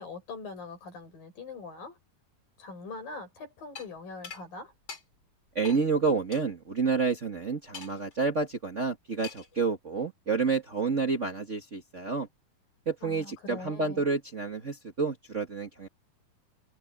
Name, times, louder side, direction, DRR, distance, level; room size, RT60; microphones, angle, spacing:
voice 1, 0.0-2.0 2.6-4.7 13.0-14.0, left 3 dB, 80° left, 8.7 m, -42 dB
sound 1, 3.8-3.9 4.2-4.4 4.9-5.0 5.7-5.8 6.3-6.4 7.7-8.1 9.2-9.6, left 5 dB, 30° left, 6.8 m, -42 dB
voice 2, 5.5-12.3 12.9-15.9, right 4 dB, 50° right, 0.8 m, -29 dB
omnidirectional pair, 4.0 m